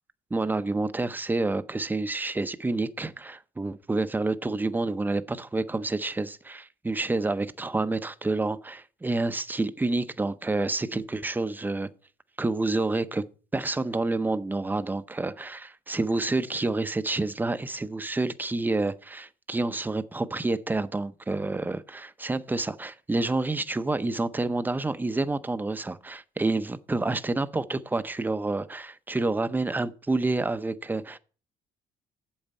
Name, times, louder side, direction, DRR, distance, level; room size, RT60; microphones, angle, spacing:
voice 1, 0.3-11.9 12.4-13.2 13.5-31.2, right 2 dB, 10° right, 0.6 m, -28 dB
8.8 x 7.2 x 5.4 m
cardioid pair, 110°, 17 cm